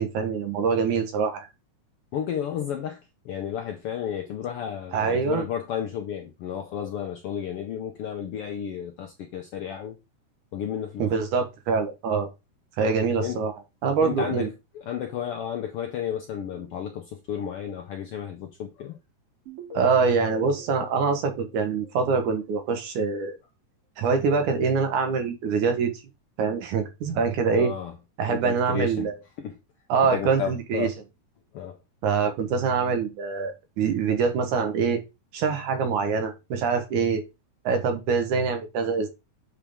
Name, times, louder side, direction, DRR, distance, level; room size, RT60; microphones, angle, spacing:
voice 1, 0.0-1.5 4.9-5.4 11.0-12.3 12.8-13.5 13.8-14.5 19.7-23.4 24.0-25.9 26.4-27.7 28.2-29.2 29.9-30.9 32.0-35.0 35.3-37.2 37.6-39.1, right 5 dB, 80° right, 2.8 m, -24 dB
voice 2, 2.1-10.0 10.5-11.0 13.2-13.4 14.0-14.5 14.9-19.0 27.5-27.9 28.3-29.1 29.4-29.6 30.1-30.9 31.5-31.8, left 9 dB, 75° left, 1.4 m, -32 dB
sound 1, 19.5-22.4, left 1 dB, 50° right, 3.1 m, -43 dB
8.5 x 4.7 x 3.6 m
omnidirectional pair, 3.5 m